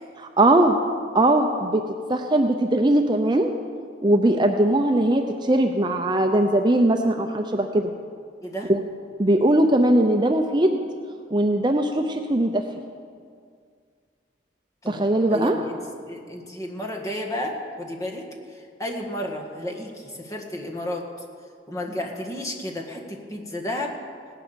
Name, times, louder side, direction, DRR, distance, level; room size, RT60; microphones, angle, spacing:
voice 1, 0.2-0.8 1.1-1.8 2.1-3.5 4.0-7.9 8.7-8.8 9.2-10.8 11.3-12.6 14.9-15.6, right 1 dB, 25° right, 4 dB, 0.7 m, -20 dB
voice 2, 14.8-15.8 16.1-18.2 18.8-21.1 21.7-23.9, left 1 dB, 15° left, 0 dB, 1.7 m, -32 dB
17.5 x 11.5 x 7.0 m, 2.1 s
head